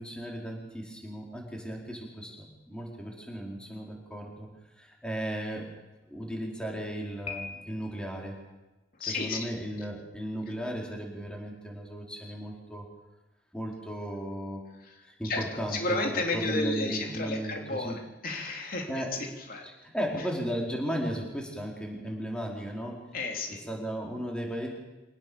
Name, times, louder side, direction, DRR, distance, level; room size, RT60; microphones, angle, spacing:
voice 1, 0.0-4.5 4.8-5.7 6.1-8.4 9.0-12.9 13.5-14.6 15.0-16.0 16.3-18.0 18.9-19.2 19.6-23.0 23.7-24.7, equal, 5° left, -1 dB, 4.5 m, -35 dB
Piano, 7.3-8.2, left 5 dB, 35° left, 2.7 m, -41 dB
voice 2, 9.0-9.5 14.8-15.0 15.2-19.7 20.2-20.3 23.1-23.6, left 2 dB, 50° left, 2 dB, 3.4 m, -32 dB
24.5 x 18.5 x 7.2 m, 1.1 s
head